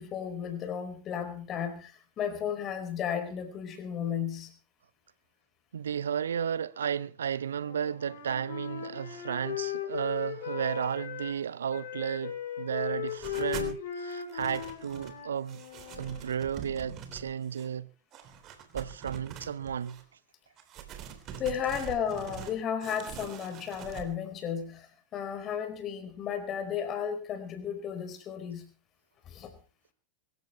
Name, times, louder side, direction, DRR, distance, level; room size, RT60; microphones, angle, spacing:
voice 1, 0.0-4.5 21.4-28.7 29.3-29.5, left 8 dB, 30° left, 4.6 m, -34 dB
voice 2, 5.7-15.6 16.0-17.9 18.7-20.0, right 8 dB, 65° right, 0.8 m, -33 dB
Wind instrument woodwind instrument, 7.6-11.4 11.7-16.2, left 10 dB, 55° left, 5.6 m, -38 dB
sound 1, 13.1-13.8 14.1-15.2 15.5-17.7 18.1-20.0 20.6-22.5 22.8-24.1, right 9 dB, 35° right, 3.5 m, -44 dB
25.0 x 14.5 x 3.2 m
figure-of-eight pair, 90°, 0 cm